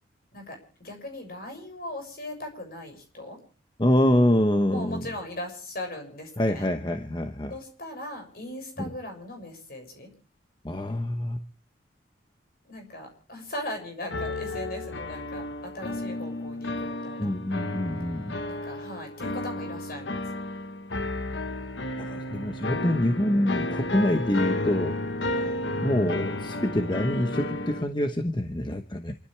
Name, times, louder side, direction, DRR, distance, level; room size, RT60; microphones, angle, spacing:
voice 1, 0.3-3.4 4.7-6.7 7.5-10.1 12.6-17.3 18.4-20.2 25.3-25.6, left 1 dB, 55° left, 4 dB, 6.7 m, -39 dB
voice 2, 3.8-5.1 6.4-7.5 10.6-11.4 17.2-18.4 22.0-24.9 25.8-29.2, left 1 dB, 25° left, 7 dB, 1.0 m, -25 dB
sound 1, 14.1-27.8, left 2 dB, 80° left, 1.3 m, -32 dB
28.0 x 13.0 x 3.3 m, 0.42 s
head